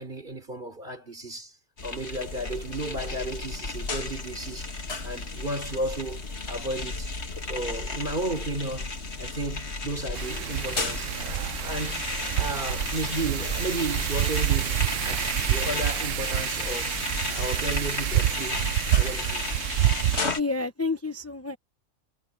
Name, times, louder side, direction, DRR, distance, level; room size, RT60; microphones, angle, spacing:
voice 1, 0.0-1.5 1.8-4.7 5.0-7.1 7.4-8.9 9.2-12.1 12.4-14.8 15.0-16.9 17.3-19.5, right 2 dB, 45° right, 3.9 m, -34 dB
sound 1, 1.8-20.4, left 3 dB, 60° left, 2.4 m, -33 dB
Wind, 10.1-20.2, right 13 dB, 85° right, 1.0 m, -28 dB
voice 2, 20.3-21.6, left 3 dB, 15° left, 1.0 m, -29 dB
omnidirectional pair, 1.3 m